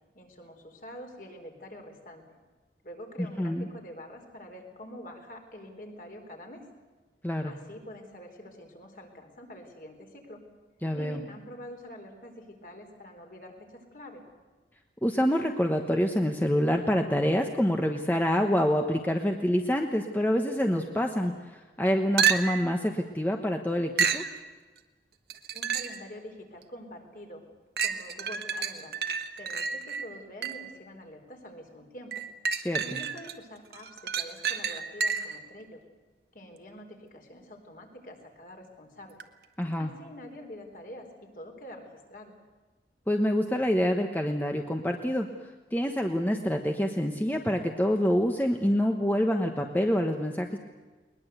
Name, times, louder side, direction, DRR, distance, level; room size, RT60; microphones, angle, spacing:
voice 1, 0.1-2.2 2.8-6.6 7.4-10.4 10.9-14.2 25.5-27.4 27.8-28.9 29.4-32.2 32.8-35.8 36.3-39.2 39.8-41.1 41.3-42.3, equal, 50° left, 3 dB, 4.2 m, -46 dB
voice 2, 3.2-3.7 7.2-7.5 10.8-11.2 15.0-24.2 32.6-32.8 39.6-39.9 43.1-45.3 45.7-50.6, equal, 10° left, 4 dB, 1.1 m, -26 dB
sound 1, 22.2-22.7 24.0-24.3 25.3-26.0 26.6-26.7 27.8-30.7 32.1-33.3 33.7-35.4 39.2-39.3, right 6 dB, 60° right, 1.4 m, -30 dB
21.0 x 21.0 x 8.2 m, 1.3 s
head